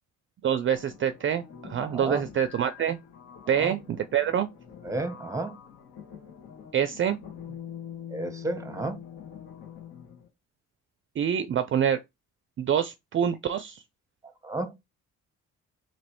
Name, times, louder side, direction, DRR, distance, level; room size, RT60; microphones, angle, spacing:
voice 1, 0.4-3.0 3.5-4.5 6.7-7.2 11.2-12.0 12.6-13.8, right 9 dB, 40° right, 0.4 m, -26 dB
sound 1, 0.8-10.3, left 9 dB, 70° left, 1.6 m, -45 dB
voice 2, 1.8-2.2 3.5-3.7 4.8-5.6 8.1-9.0 14.4-14.7, right 2 dB, 10° right, 0.8 m, -32 dB
3.0 x 3.0 x 4.3 m
cardioid pair, 90°, 30 cm